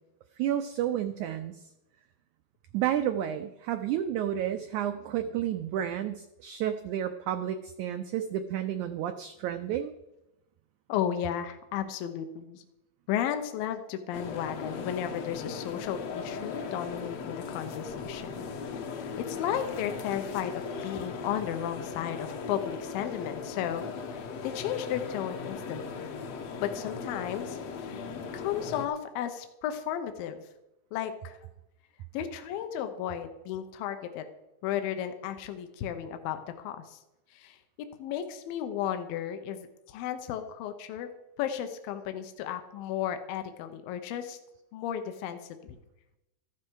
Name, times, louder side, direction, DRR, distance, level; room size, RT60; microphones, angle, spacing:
voice 1, 0.4-1.6 2.7-9.9, right 10 dB, 85° right, 8 dB, 1.7 m, -31 dB
voice 2, 10.9-12.6 13.1-18.4 19.2-23.8 24.1-26.1 26.6-28.0 28.3-30.4 30.9-31.4 32.1-34.3 34.6-37.0 37.3-37.6 38.0-41.1 41.4-44.4 44.7-45.8, left 10 dB, 80° left, 8 dB, 2.5 m, -34 dB
sound 1, 14.1-28.9, left 5 dB, 65° left, 1.7 m, -38 dB
14.0 x 12.0 x 4.7 m, 0.95 s
omnidirectional pair, 4.2 m